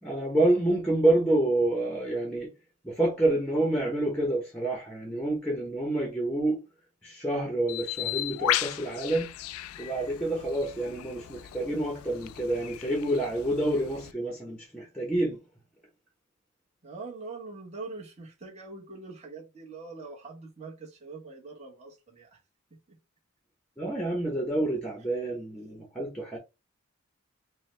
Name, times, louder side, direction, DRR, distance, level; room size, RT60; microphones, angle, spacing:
voice 1, 0.0-2.5 2.8-6.6 7.0-9.3 9.8-15.4 23.8-26.4, right 1 dB, 5° left, 0.9 m, -28 dB
Bird, 7.7-14.1, left 13 dB, 90° left, 0.3 m, -35 dB
voice 2, 16.8-22.4 22.9-23.0, right 3 dB, 30° right, 1.3 m, -43 dB
4.6 x 2.3 x 3.3 m
head